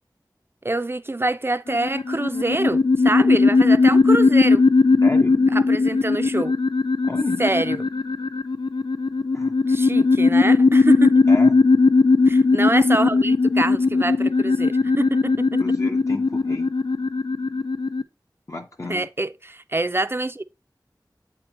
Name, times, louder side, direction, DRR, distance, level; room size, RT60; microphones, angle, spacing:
voice 1, 0.6-4.6 5.5-6.6 7.4-7.8 9.7-11.1 12.3-15.6 18.9-20.4, right 2 dB, 30° right, 0.4 m, -25 dB
sound 1, 1.7-18.0, left 3 dB, 80° left, 0.4 m, -18 dB
voice 2, 5.0-5.4 7.0-7.4 7.7-7.8 9.3-9.5 11.3-11.6 15.6-16.7 18.5-19.1, left 2 dB, 40° left, 0.7 m, -32 dB
7.9 x 3.0 x 4.4 m
wide cardioid pair, 40°, 8 cm